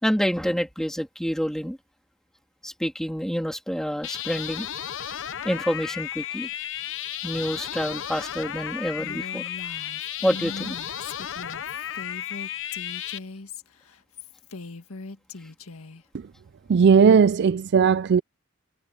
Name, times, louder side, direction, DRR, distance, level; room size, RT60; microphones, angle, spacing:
voice 1, 0.0-1.8 2.6-4.7 5.4-6.5 7.2-9.4 10.2-10.8, equal, ahead, 2.9 m, -27 dB
sound 1, 4.0-13.2, left 10 dB, 60° left, 0.8 m, -34 dB
Female speech woman speaking, 9.0-16.0, left 3 dB, 75° left, 1.8 m, -40 dB
voice 2, 16.7-18.2, right 6 dB, 50° right, 0.4 m, -17 dB
head